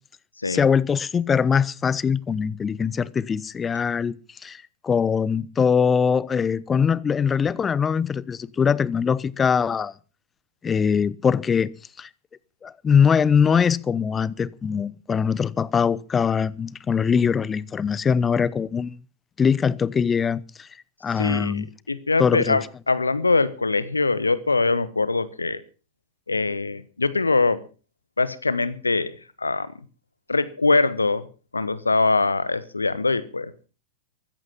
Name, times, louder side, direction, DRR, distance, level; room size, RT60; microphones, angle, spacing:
voice 1, 0.4-4.1 4.4-9.9 10.6-11.7 12.0-12.1 12.6-19.0 19.4-20.7 21.0-21.7 22.2-22.6, left 6 dB, 20° left, 0.8 m, -22 dB
voice 2, 21.2-21.6 21.9-25.6 26.3-27.6 28.2-29.7 30.3-31.3 31.5-33.5, left 3 dB, 80° left, 1.2 m, -23 dB
14.5 x 14.5 x 5.8 m
figure-of-eight pair, 90°, 0 cm